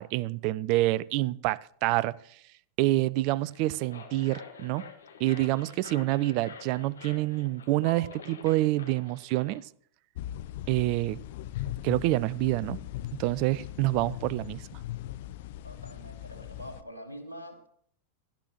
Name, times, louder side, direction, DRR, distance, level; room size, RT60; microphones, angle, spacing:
voice 1, 0.0-2.2 2.8-4.8 5.2-9.6 10.7-11.2 11.8-12.8 13.2-14.7, right 18 dB, 45° right, 22 dB, 0.4 m, -27 dB
sound 1, 3.4-9.6, left 6 dB, 70° left, 1.6 m, -48 dB
sound 2, 10.2-16.8, left 13 dB, 50° left, 0.5 m, -39 dB
voice 2, 15.6-17.7, equal, 80° right, 3 dB, 1.5 m, -44 dB
17.5 x 11.5 x 3.0 m, 0.63 s
figure-of-eight pair, 90°, 0 cm